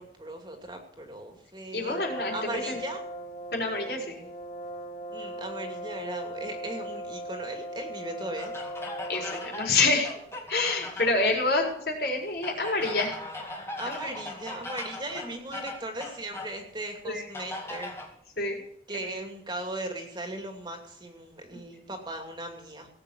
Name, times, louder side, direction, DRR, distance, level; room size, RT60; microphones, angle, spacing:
voice 1, 0.0-2.0 2.3-3.0 5.1-8.5 13.8-18.0 18.9-22.9, right 1 dB, 25° right, 4 dB, 2.5 m, -38 dB
voice 2, 1.7-2.8 3.5-4.2 9.1-10.1 10.5-13.2 13.8-14.1 17.0-17.3 18.4-18.6 18.9-19.1, left 3 dB, 60° left, 0 dB, 4.5 m, -27 dB
Brass instrument, 1.9-9.7, equal, 40° left, 4.2 m, -38 dB
sound 1, 8.4-11.3 12.4-16.6 17.3-18.1, left 2 dB, 15° left, 2.3 m, -39 dB
18.0 x 8.6 x 6.3 m, 0.70 s
head